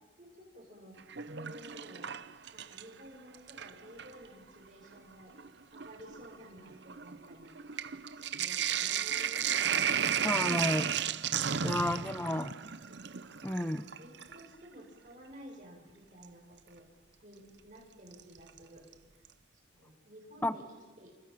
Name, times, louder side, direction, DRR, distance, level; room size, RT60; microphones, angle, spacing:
voice 1, 0.2-0.9 1.3-2.1 2.5-5.4 5.7-7.7 8.1-9.5 13.6-16.8 17.2-18.8 19.1-19.2 19.5-20.6 21.0-21.1, equal, 40° right, -1 dB, 7.5 m, -53 dB
Sink (filling or washing), 1.0-3.0 3.3-4.2 5.0-5.1 5.3-14.5 16.2-16.3 18.1-18.6 18.9-19.0 19.2-19.3, right 8 dB, 60° right, 0.7 m, -34 dB
voice 2, 10.2-10.9 11.6-12.5 13.4-13.8 20.4-20.5, left 1 dB, 10° left, 12 dB, 0.8 m, -31 dB
28.5 x 28.0 x 5.9 m, 1.3 s
head